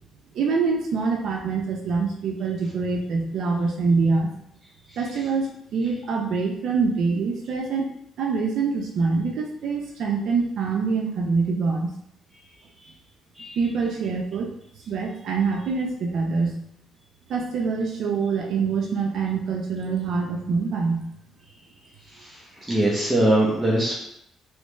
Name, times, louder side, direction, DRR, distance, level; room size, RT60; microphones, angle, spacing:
voice 1, 0.3-4.3 5.0-11.9 13.6-14.5 14.9-16.6 17.3-21.1, right 4 dB, 70° right, 1 dB, 0.5 m, -25 dB
voice 2, 22.7-24.0, right 1 dB, 10° right, -5 dB, 0.9 m, -21 dB
3.2 x 3.1 x 3.2 m, 0.74 s
cardioid pair, 90°, 0 cm